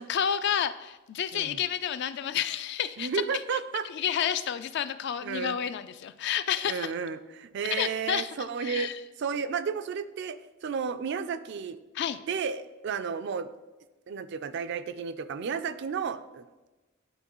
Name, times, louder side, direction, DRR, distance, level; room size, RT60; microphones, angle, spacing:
voice 1, 0.0-3.6 3.8-6.9 7.6-8.3 8.6-9.0 11.9-12.2, left 9 dB, 55° left, 13 dB, 0.3 m, -30 dB
voice 2, 3.0-3.9 5.2-5.6 6.7-8.9 9.2-11.8 12.3-13.5 14.1-16.7, right 6 dB, 60° right, 12 dB, 0.4 m, -32 dB
10.5 x 3.9 x 3.0 m, 1.1 s
head